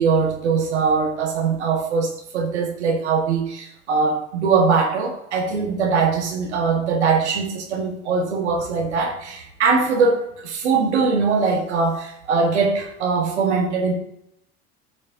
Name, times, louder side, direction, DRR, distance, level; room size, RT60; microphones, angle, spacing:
voice 1, 0.0-2.1 2.3-13.9, right 4 dB, 80° right, 2 dB, 1.5 m, -21 dB
13.5 x 5.4 x 2.8 m, 0.76 s
hypercardioid pair, 70°, 34 cm